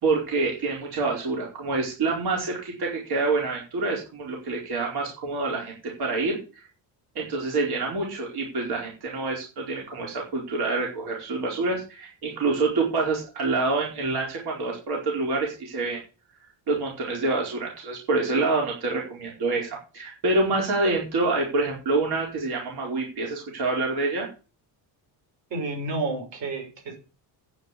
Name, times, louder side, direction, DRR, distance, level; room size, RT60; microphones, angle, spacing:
voice 1, 0.0-6.6 7.1-16.0 16.7-24.3, right 3 dB, 60° right, -1 dB, 4.6 m, -27 dB
voice 2, 25.5-27.0, right 2 dB, 80° right, 2 dB, 5.7 m, -30 dB
9.7 x 6.7 x 8.7 m, 0.33 s
cardioid pair, 155°, 43 cm